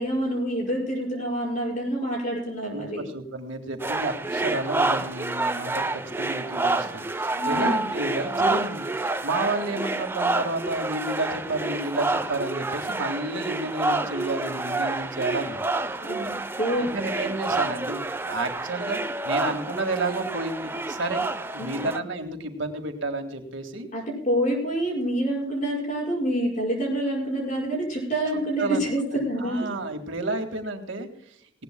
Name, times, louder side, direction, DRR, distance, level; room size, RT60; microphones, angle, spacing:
voice 1, 0.0-3.0 7.3-7.8 16.0-16.3 16.6-16.9 21.6-21.9 23.9-29.7, right 1 dB, 40° left, -2 dB, 5.7 m, -27 dB
voice 2, 2.7-15.6 16.8-21.3 21.5-23.9 28.6-28.9 29.1-31.4, right 2 dB, 75° right, 5 dB, 1.9 m, -31 dB
sound 1, 3.8-22.0, right 2 dB, 10° right, 0.5 m, -28 dB
19.0 x 17.5 x 2.2 m, 0.68 s
head